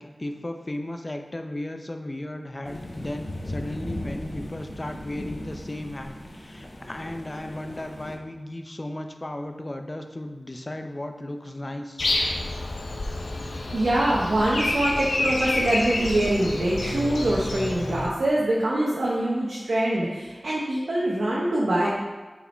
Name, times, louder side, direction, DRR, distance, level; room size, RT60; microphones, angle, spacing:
voice 1, 0.0-12.1, left 1 dB, 35° left, 5 dB, 0.7 m, -35 dB
sound 1, 2.6-8.2, left 1 dB, 55° left, 1.2 m, -37 dB
Breathing, 12.0-18.1, left 2 dB, 90° left, 0.8 m, -28 dB
voice 2, 13.7-21.9, right 1 dB, 85° right, -5 dB, 1.1 m, -24 dB
6.8 x 4.9 x 4.4 m, 1.3 s
wide cardioid pair, 50°, 0 cm